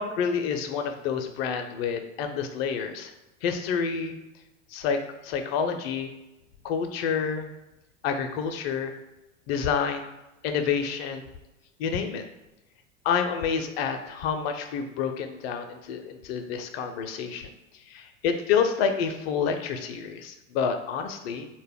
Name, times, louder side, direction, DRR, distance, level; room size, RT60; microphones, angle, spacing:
voice 1, 0.0-3.1 3.4-4.1 4.7-6.1 6.6-7.5 8.0-8.9 9.5-10.1 10.4-11.3 11.8-12.2 13.0-17.5 17.9-21.5, left 6 dB, 55° left, 6 dB, 0.4 m, -28 dB
2.2 x 2.0 x 3.4 m, 1.0 s
hypercardioid pair, 85°, 38 cm